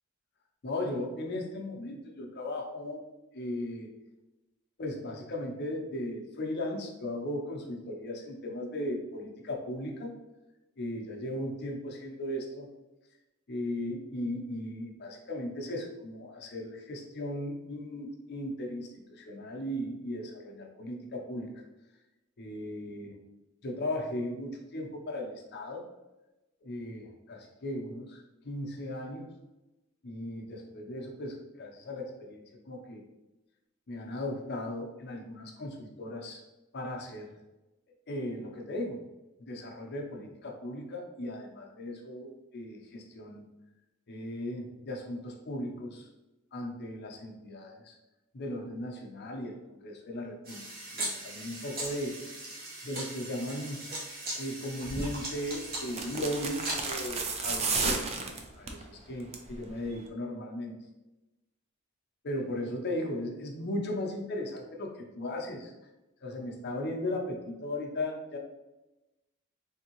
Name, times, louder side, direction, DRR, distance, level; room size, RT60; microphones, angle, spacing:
voice 1, 0.6-3.0 3.3-3.9 4.8-10.1 10.8-12.7 13.5-21.6 22.4-23.1 23.6-25.9 26.6-29.3 30.0-33.0 33.9-36.4 36.7-37.4 38.1-39.0 39.4-43.4 44.1-46.1 46.5-48.0 48.3-50.6 50.9-52.2 52.8-53.8 54.4-58.0 58.6-60.7 62.2-65.7 66.2-68.4, left 1 dB, 50° left, 1 dB, 0.6 m, -37 dB
sound 1, 50.4-57.1, right 1 dB, 45° right, 1.0 m, -39 dB
sound 2, 54.9-55.1 55.9-58.8 59.2-59.5 59.8-59.9, right 3 dB, 30° right, 0.4 m, -32 dB
3.5 x 2.6 x 2.9 m, 1.0 s
head